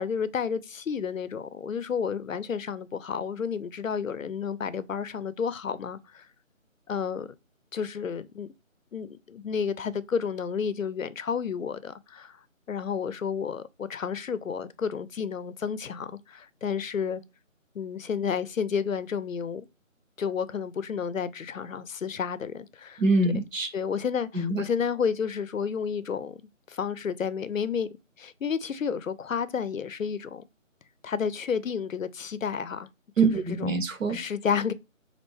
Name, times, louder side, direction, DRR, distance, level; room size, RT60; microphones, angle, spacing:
voice 1, 0.0-6.3 6.9-7.3 7.7-8.5 8.9-12.4 12.7-17.2 17.7-19.7 20.2-23.0 23.7-26.4 26.7-27.9 28.2-30.4 31.0-32.9 33.2-33.8 34.1-34.7, left 6 dB, 75° left, 0.6 m, -31 dB
voice 2, 23.0-23.7 24.3-24.6 33.2-34.2, right 3 dB, 70° right, 0.9 m, -24 dB
4.3 x 2.5 x 3.4 m
figure-of-eight pair, 180°, 40 cm